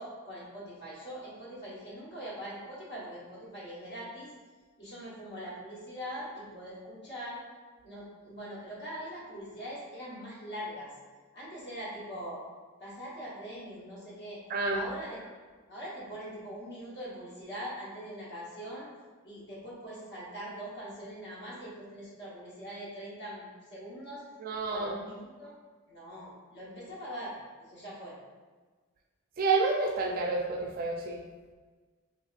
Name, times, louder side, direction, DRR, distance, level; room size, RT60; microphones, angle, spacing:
voice 1, 0.0-4.3 4.8-7.4 7.8-10.9 11.3-12.4 12.8-14.4 14.7-15.3 15.7-18.9 19.2-24.2 24.7-25.5 25.9-27.4 27.7-28.2, equal, 50° left, -7 dB, 1.1 m, -42 dB
voice 2, 14.5-14.8 24.4-24.9 29.4-31.2, right 3 dB, 40° right, 1 dB, 0.3 m, -29 dB
3.4 x 2.7 x 2.4 m, 1.4 s
head